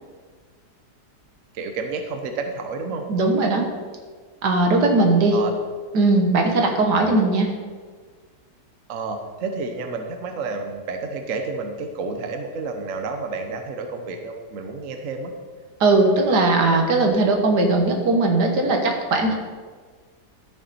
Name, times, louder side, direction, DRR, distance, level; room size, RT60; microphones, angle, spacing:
voice 1, 1.5-3.0 5.3-5.5 8.9-15.3, right 4 dB, 55° right, 5 dB, 1.1 m, -30 dB
voice 2, 3.1-3.7 4.4-5.4 5.9-7.5 15.8-19.3, right 2 dB, 75° right, 3 dB, 1.9 m, -19 dB
13.0 x 5.9 x 4.1 m, 1.5 s
omnidirectional pair, 1.8 m